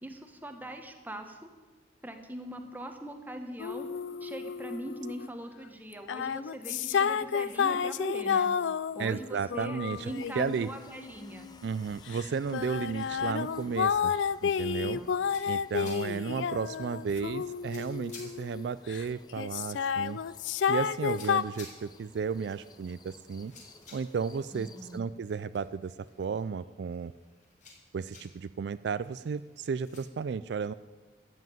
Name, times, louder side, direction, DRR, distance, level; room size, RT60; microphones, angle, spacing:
voice 1, 0.0-1.4 2.0-3.9 4.2-8.5 8.9-9.8 10.0-11.5 14.8-15.1 15.8-16.3 24.5-25.1, right 1 dB, 10° right, 5 dB, 1.3 m, -41 dB
sound 1, 3.6-5.3 5.9-11.5 12.1-19.0 19.4-21.4, left 7 dB, 80° left, 0.4 m, -31 dB
voice 2, 9.0-10.1 10.4-10.7 11.6-14.2 14.4-15.0 15.5-20.2 20.7-23.5 23.9-27.1 27.9-30.7, right 5 dB, 65° right, 15 dB, 0.3 m, -33 dB
sound 2, 9.9-25.0, left 2 dB, 20° left, 0.8 m, -57 dB
sound 3, 14.9-30.0, left 3 dB, 40° left, 4.4 m, -56 dB
13.5 x 7.6 x 9.2 m, 1.3 s
head